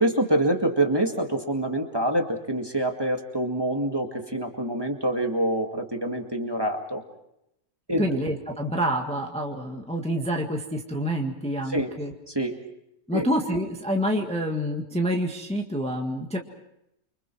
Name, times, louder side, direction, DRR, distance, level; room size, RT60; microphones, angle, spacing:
voice 1, 0.0-7.0 7.9-8.2 11.7-11.9 12.3-12.6 13.1-13.3, right 1 dB, 15° right, 3 dB, 2.1 m, -26 dB
voice 2, 8.0-12.1 13.1-16.4, equal, 5° left, 1 dB, 1.7 m, -27 dB
29.5 x 25.0 x 4.7 m, 0.82 s
omnidirectional pair, 1.6 m